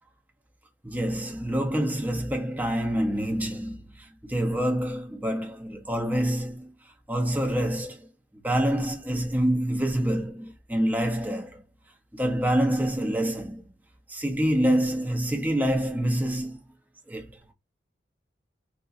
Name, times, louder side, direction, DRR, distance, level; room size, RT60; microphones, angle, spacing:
voice 1, 0.8-6.7 7.1-8.1 8.4-11.6 12.1-13.6 14.1-16.6 17.1-17.3, equal, 10° right, 0.6 m, -26 dB
3.4 x 2.2 x 2.5 m
head